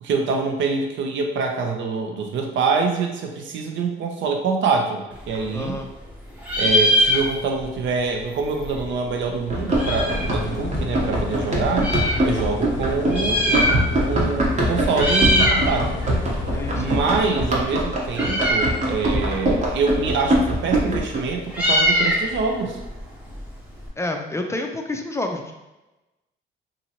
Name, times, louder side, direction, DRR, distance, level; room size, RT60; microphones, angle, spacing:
voice 1, 0.0-5.8 6.6-11.9 12.2-13.8 14.1-16.0 16.7-22.8, right 4 dB, 75° right, 3 dB, 0.5 m, -25 dB
Meow, 5.1-6.1 6.4-7.7 8.0-8.1 8.2-10.4 11.0-12.2 13.0-14.1 14.4-14.6 14.9-15.7 16.0-23.9, equal, 5° right, 0.9 m, -23 dB
voice 2, 5.5-5.9 16.5-17.0 24.0-25.5, left 2 dB, 15° left, 3 dB, 0.4 m, -29 dB
Run, 9.5-21.2, right 1 dB, 35° right, 0.9 m, -23 dB
sound 1, 9.7-17.3, left 3 dB, 65° left, 0.5 m, -31 dB
2.8 x 2.6 x 2.8 m, 1.0 s
cardioid pair, 90°, 20 cm